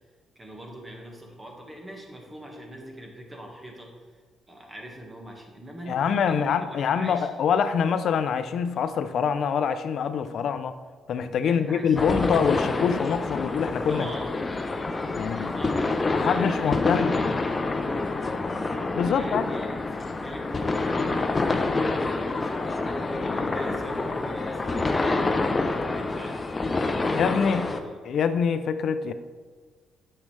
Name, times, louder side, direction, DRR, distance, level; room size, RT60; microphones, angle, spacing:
voice 1, 0.3-4.2 4.5-7.3 11.4-12.1 13.9-14.3 15.3-17.1 19.0-19.9 20.2-22.7 23.1-26.5 26.9-28.0, right 1 dB, 20° right, 1 dB, 1.6 m, -42 dB
voice 2, 5.9-10.7 11.1-14.1 15.1-15.5 16.1-17.2 18.9-19.5 27.2-27.7 28.0-29.1, left 7 dB, 65° left, 11 dB, 0.4 m, -25 dB
sound 1, 12.0-27.8, left 3 dB, 25° left, 0.7 m, -27 dB
8.6 x 6.5 x 3.3 m, 1.5 s
cardioid pair, 90°, 0 cm